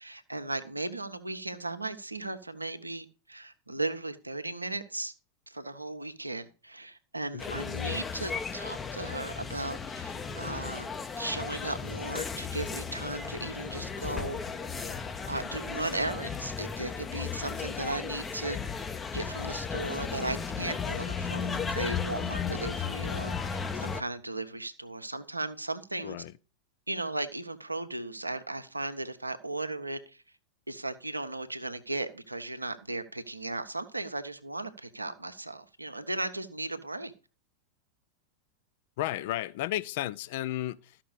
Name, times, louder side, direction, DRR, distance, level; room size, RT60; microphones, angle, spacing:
voice 1, 0.0-5.1 5.5-10.9 11.2-14.4 15.3-18.6 19.1-26.2 26.9-30.2 30.7-37.1, right 2 dB, 85° right, 1.0 m, -36 dB
voice 2, 7.3-7.7 26.0-26.3 39.0-41.0, left 14 dB, 50° left, 0.5 m, -33 dB
sound 1, 7.4-24.0, left 6 dB, 20° left, 0.7 m, -35 dB
sound 2, 10.0-16.3, right 10 dB, 50° right, 1.0 m, -54 dB
13.0 x 5.9 x 4.9 m
figure-of-eight pair, 90°, 0 cm